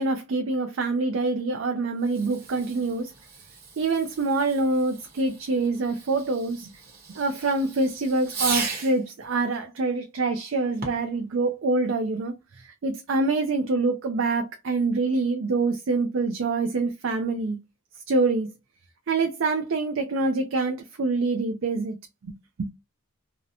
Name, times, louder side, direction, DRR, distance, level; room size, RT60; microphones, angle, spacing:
voice 1, 0.0-3.1 3.8-6.7 7.1-17.6 18.1-18.5 19.1-22.0 22.2-22.3 22.6-22.7, right 3 dB, 60° right, 0.4 m, -25 dB
Fireworks, 2.0-9.1 10.7-11.2, right 4 dB, 45° right, 0.9 m, -37 dB
2.6 x 2.0 x 2.7 m
head